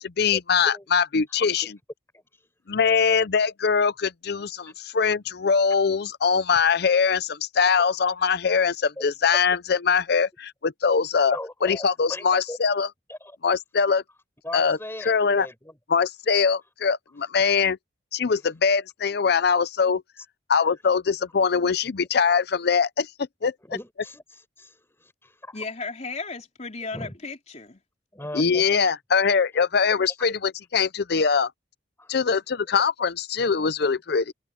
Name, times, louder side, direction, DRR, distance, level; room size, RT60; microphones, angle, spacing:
voice 1, 0.0-1.8 2.7-11.4 11.6-12.9 13.4-14.0 14.5-14.8 15.1-15.5 15.9-17.8 18.1-20.0 20.5-23.1 23.4-23.5 28.3-31.5 32.1-34.3, left 5 dB, 60° left, 0.6 m, -22 dB
voice 2, 1.3-1.7 4.6-4.7 7.6-7.7 9.0-9.1 11.3-12.6 13.1-13.4 14.4-15.8 20.2-20.3 23.6-24.8 26.9-27.1 28.1-28.9 30.0-30.1 32.0-32.2, left 1 dB, 15° left, 5.5 m, -38 dB
voice 3, 25.5-27.8, left 4 dB, 40° left, 3.7 m, -35 dB
head